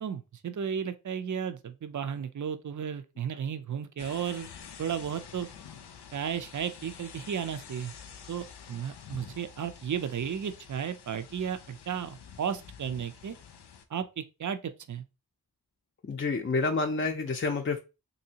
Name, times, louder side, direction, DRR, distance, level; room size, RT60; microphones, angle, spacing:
voice 1, 0.0-4.5 4.8-5.5 6.1-7.9 8.3-13.4 13.9-15.0, right 8 dB, 50° right, 0.5 m, -34 dB
sound 1, 4.0-13.8, left 7 dB, 90° left, 0.5 m, -49 dB
voice 2, 16.0-17.8, left 3 dB, 35° left, 0.4 m, -28 dB
3.2 x 2.7 x 2.8 m
wide cardioid pair, 55°, 39 cm